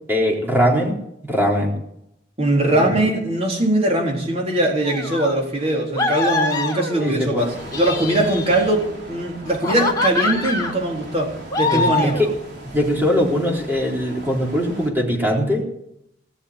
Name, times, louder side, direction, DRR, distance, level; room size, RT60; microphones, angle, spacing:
voice 1, 0.1-1.0 1.3-1.7 2.6-3.0 7.0-7.5 11.7-12.3 12.7-15.6, equal, 10° right, -1 dB, 3.9 m, -21 dB
voice 2, 2.4-12.2, right 1 dB, 35° right, 0 dB, 3.9 m, -21 dB
sound 1, 4.8-5.4 5.9-7.2 7.6-8.9 9.5-10.8 11.5-12.3, left 3 dB, 20° left, 3.8 m, -24 dB
sound 2, 7.4-14.9, right 1 dB, 65° right, 3.8 m, -39 dB
19.0 x 7.2 x 9.8 m, 0.78 s
head